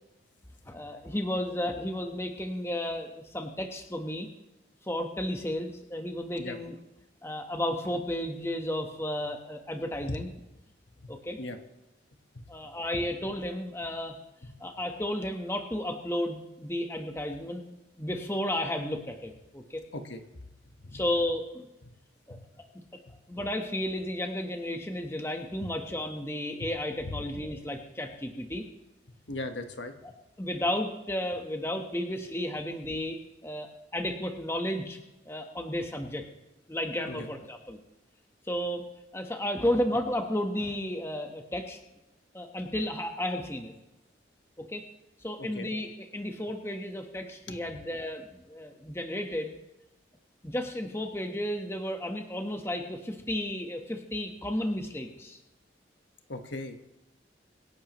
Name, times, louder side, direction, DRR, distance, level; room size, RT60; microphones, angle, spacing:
voice 1, 0.7-4.3 4.9-6.7 7.2-10.3 11.1-11.4 12.5-14.2 14.6-17.7 18.0-19.8 20.9-21.7 22.3-22.4 23.3-28.6 30.0-30.1 30.4-33.2 33.4-35.0 35.2-36.2 36.7-37.8 38.5-38.8 39.1-41.8 42.3-43.7 44.6-44.8 45.2-49.5 50.4-55.4, left 1 dB, 15° left, 4 dB, 1.2 m, -33 dB
voice 2, 11.0-11.6 12.3-12.4 14.4-14.5 19.9-20.2 20.8-21.0 21.9-22.0 22.3-22.4 23.1-23.2 27.0-27.1 29.3-29.9 37.1-37.3 45.4-45.7 47.5-47.6 56.3-56.8, left 2 dB, 75° left, 6 dB, 1.3 m, -38 dB
25.0 x 11.0 x 3.1 m, 0.97 s
head